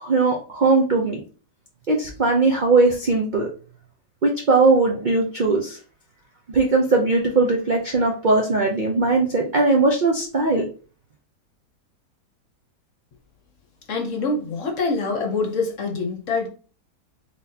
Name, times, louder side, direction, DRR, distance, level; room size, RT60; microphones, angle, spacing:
voice 1, 0.0-1.2 1.9-3.5 4.2-5.8 6.5-10.6, right 3 dB, 70° right, 0.4 m, -19 dB
voice 2, 13.9-16.5, left 3 dB, 55° left, 1.1 m, -25 dB
4.0 x 3.7 x 2.8 m
omnidirectional pair, 1.8 m